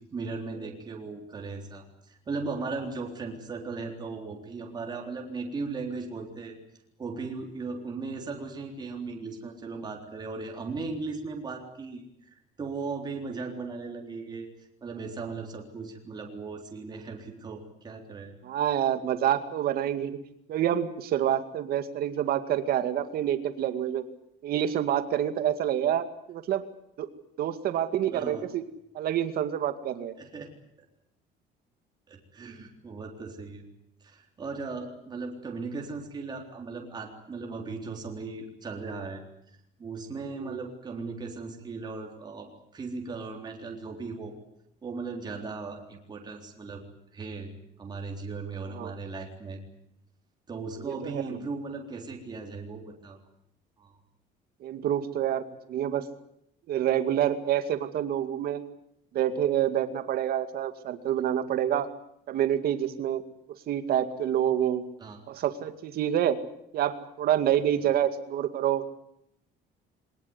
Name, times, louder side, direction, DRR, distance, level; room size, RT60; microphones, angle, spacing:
voice 1, 0.1-6.6 7.0-14.5 14.8-18.3 28.1-28.4 30.2-30.5 32.1-33.6 34.0-44.3 44.8-46.8 47.1-47.5 47.8-49.6 50.5-53.2 53.8-54.0 65.0-65.2, right 4 dB, 20° right, 1 dB, 3.8 m, -37 dB
voice 2, 18.4-20.2 20.5-24.0 24.4-26.6 27.0-27.1 27.4-28.6 28.9-30.1 40.4-40.6 48.7-48.9 50.8-51.2 54.6-56.1 56.7-58.6 59.1-61.9 62.3-63.2 63.7-64.8 65.3-66.4 66.7-68.8, right 10 dB, 55° right, 9 dB, 2.2 m, -27 dB
23.0 x 20.0 x 9.7 m, 0.76 s
cardioid pair, 175°, 19 cm